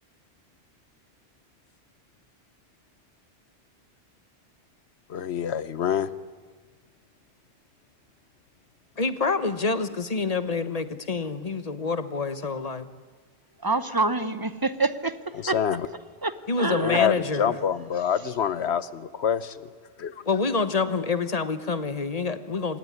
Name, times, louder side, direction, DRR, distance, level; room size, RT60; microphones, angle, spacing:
voice 1, 5.1-6.1 15.5-15.9 16.7-19.5 20.0-20.1, left 8 dB, 90° left, 15 dB, 1.2 m, -26 dB
voice 2, 9.0-12.9 16.5-17.5 20.3-22.8, left 4 dB, 40° left, 12 dB, 1.2 m, -27 dB
voice 3, 13.6-15.6 16.2-17.0, right 3 dB, 20° right, 13 dB, 0.9 m, -27 dB
26.0 x 18.5 x 9.8 m, 1.4 s
omnidirectional pair, 1.1 m